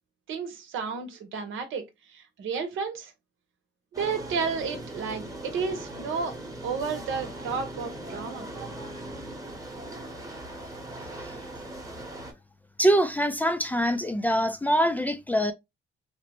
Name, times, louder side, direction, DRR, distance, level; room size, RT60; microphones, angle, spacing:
voice 1, 0.3-1.8 2.1-3.1 4.0-6.3 6.6-8.5, right 5 dB, 80° right, 0.9 m, -32 dB
sound 1, 3.9-12.3, right 1 dB, 15° right, 1.0 m, -39 dB
voice 2, 12.8-15.5, equal, 10° left, 0.4 m, -24 dB
2.8 x 2.1 x 2.9 m
cardioid pair, 90°, 20 cm